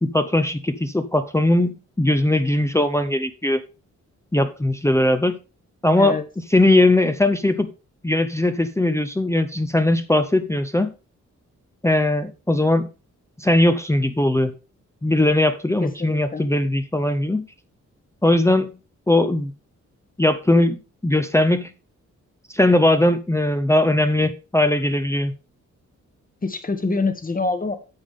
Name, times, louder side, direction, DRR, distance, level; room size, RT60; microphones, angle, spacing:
voice 1, 0.0-3.6 4.3-5.4 5.8-6.2 6.5-7.7 8.0-10.9 11.8-12.9 13.4-14.5 15.0-17.5 18.2-18.7 19.1-19.5 20.2-21.7 22.5-25.3, left 1 dB, 10° left, 8 dB, 0.6 m, -19 dB
voice 2, 15.8-16.5 26.4-27.8, left 3 dB, 30° left, 8 dB, 1.3 m, -25 dB
8.9 x 7.2 x 3.6 m, 0.32 s
wide cardioid pair, 105°, 29 cm